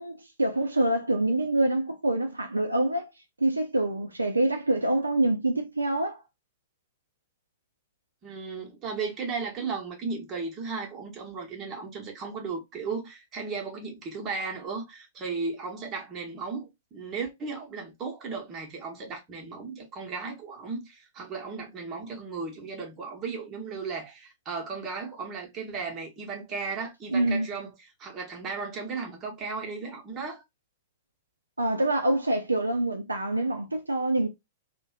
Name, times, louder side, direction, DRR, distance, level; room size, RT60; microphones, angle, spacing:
voice 1, 0.0-3.1 3.4-6.2 27.1-27.5 31.6-34.3, right 1 dB, 85° right, 0.4 m, -26 dB
voice 2, 8.2-30.4, right 4 dB, 25° right, 0.9 m, -35 dB
2.6 x 2.1 x 2.4 m
figure-of-eight pair, 105°, 0 cm